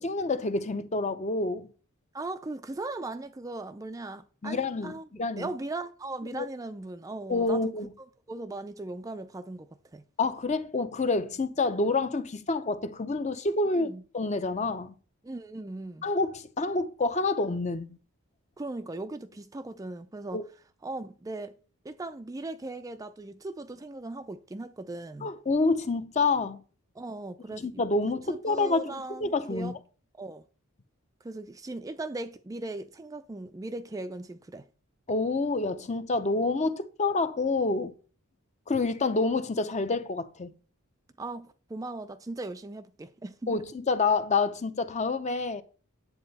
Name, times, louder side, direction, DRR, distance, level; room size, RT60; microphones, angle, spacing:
voice 1, 0.0-1.7 4.4-5.5 6.4-6.5 7.3-7.9 10.2-14.9 16.0-18.0 20.3-20.4 25.2-26.6 27.5-29.8 35.1-37.9 38.7-40.5 43.5-45.6, left 3 dB, 30° left, 0.6 m, -28 dB
voice 2, 2.1-5.1 5.4-7.7 8.3-10.0 13.7-14.0 15.2-16.1 18.6-20.4 20.8-21.6 21.8-25.3 27.0-29.8 30.2-30.4 31.2-34.7 41.2-43.6, right 2 dB, 15° right, 0.3 m, -38 dB
9.7 x 7.6 x 4.1 m
head